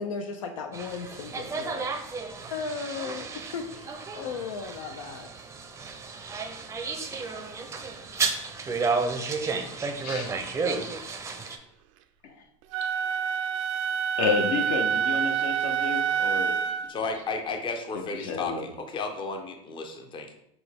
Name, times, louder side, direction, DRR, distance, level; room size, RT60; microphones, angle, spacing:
voice 1, 0.0-1.9 2.5-5.3, left 5 dB, 90° left, 6 dB, 0.5 m, -36 dB
sound 1, 0.7-11.6, right 4 dB, 20° right, 0.5 m, -32 dB
Wind instrument woodwind instrument, 12.7-16.9, right 8 dB, 70° right, 0.4 m, -27 dB
voice 2, 14.2-16.6 17.9-18.6, left 5 dB, 65° left, 4 dB, 0.9 m, -30 dB
voice 3, 16.9-20.3, left 4 dB, 30° left, 5 dB, 0.6 m, -33 dB
5.9 x 2.3 x 3.4 m, 0.76 s
supercardioid pair, 105°, 16 cm